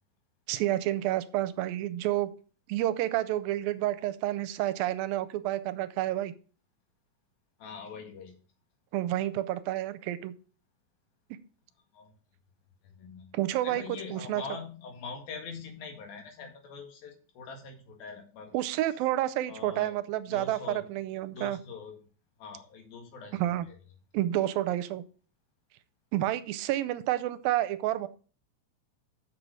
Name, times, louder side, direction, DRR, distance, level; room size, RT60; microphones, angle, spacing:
voice 1, 0.5-2.3 2.7-6.3 8.9-10.3 13.3-13.8 14.1-14.4 18.5-21.6 23.3-23.7 24.1-25.0 26.1-28.1, right 14 dB, 85° right, 14 dB, 2.4 m, -29 dB
voice 2, 7.6-8.4 11.9-12.1 12.8-13.4 13.6-18.6 19.5-19.9 20.3-20.8 21.3-22.0 22.4-23.4, left 5 dB, 85° left, 3 dB, 3.8 m, -43 dB
7.4 x 6.6 x 6.2 m, 0.39 s
omnidirectional pair, 4.1 m